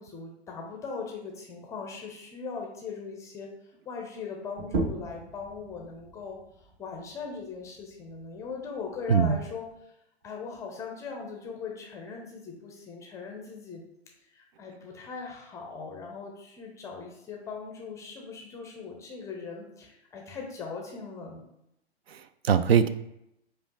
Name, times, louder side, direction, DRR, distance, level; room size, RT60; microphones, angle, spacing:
voice 1, 0.0-9.6 10.2-13.8 14.3-21.4, left 5 dB, 10° left, 1 dB, 0.5 m, -39 dB
sound 1, 4.6-9.8, right 3 dB, 30° right, 0.8 m, -38 dB
voice 2, 22.1-22.9, right 7 dB, 65° right, 11 dB, 0.5 m, -22 dB
4.9 x 2.4 x 3.7 m, 0.81 s
figure-of-eight pair, 110°, 33 cm